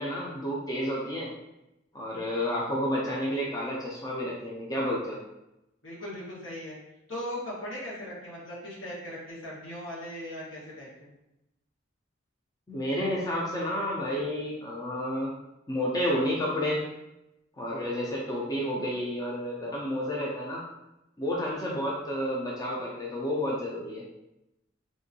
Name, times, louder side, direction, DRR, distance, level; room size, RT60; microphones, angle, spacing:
voice 1, 0.0-1.3 1.9-5.2 12.7-15.3 15.7-16.8 17.6-20.6 21.2-24.0, equal, 20° left, -4 dB, 0.4 m, -30 dB
voice 2, 5.8-6.8 7.1-11.1, left 1 dB, 75° left, -6 dB, 1.2 m, -38 dB
3.7 x 2.5 x 2.7 m, 0.90 s
head